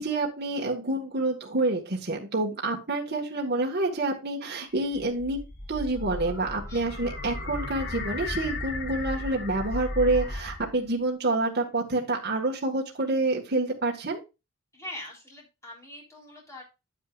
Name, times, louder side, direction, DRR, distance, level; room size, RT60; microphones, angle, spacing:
voice 1, 0.0-5.4 5.7-14.2, right 2 dB, 50° right, -1 dB, 1.8 m, -28 dB
sound 1, 4.7-10.9, left 2 dB, 50° left, 1.8 m, -35 dB
voice 2, 14.7-16.6, left 1 dB, 15° left, -1 dB, 3.6 m, -42 dB
9.4 x 9.4 x 2.5 m, 0.27 s
head